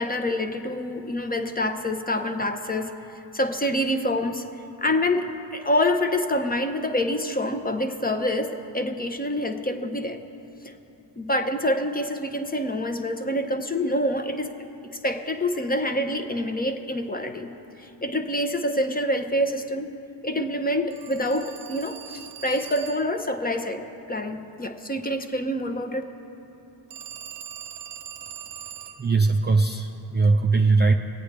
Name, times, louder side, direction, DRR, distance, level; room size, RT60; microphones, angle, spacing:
voice 1, 0.0-2.9 3.3-4.5 4.8-10.2 10.6-10.7 11.2-14.5 15.0-17.5 17.8-19.9 20.2-23.8 24.1-26.0, left 1 dB, 20° left, 7 dB, 0.8 m, -26 dB
Telephone, 20.9-23.2 26.9-29.1, right 9 dB, 55° right, 0.7 m, -41 dB
voice 2, 29.0-30.9, right 3 dB, 20° right, 3 dB, 0.4 m, -20 dB
20.5 x 8.6 x 3.4 m, 3.0 s
supercardioid pair, 60°, 50 cm